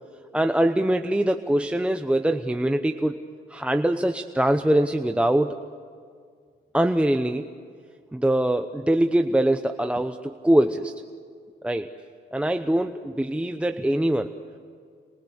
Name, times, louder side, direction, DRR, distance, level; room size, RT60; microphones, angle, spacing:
voice 1, 0.3-3.2 3.5-5.6 6.7-7.5 8.1-10.9 11.6-11.9 12.3-14.3, right 1 dB, 5° right, 6 dB, 0.9 m, -23 dB
27.5 x 22.0 x 8.2 m, 2.1 s
cardioid pair, 90°, 20 cm